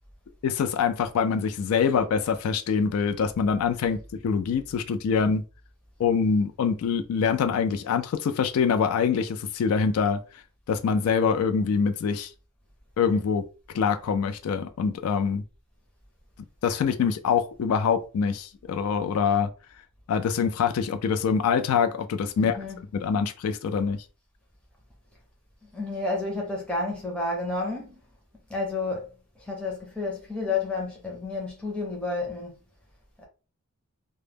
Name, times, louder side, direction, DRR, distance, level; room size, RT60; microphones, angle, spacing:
voice 1, 0.4-4.0 4.2-5.4 6.0-10.2 10.7-12.3 13.0-13.4 13.7-15.4 16.6-19.5 20.1-22.6 22.9-24.0, left 6 dB, 80° left, 0.3 m, -24 dB
voice 2, 22.4-22.8 25.7-28.0 28.5-29.1 29.4-32.5, left 3 dB, 5° left, 0.5 m, -30 dB
2.1 x 2.0 x 3.2 m
head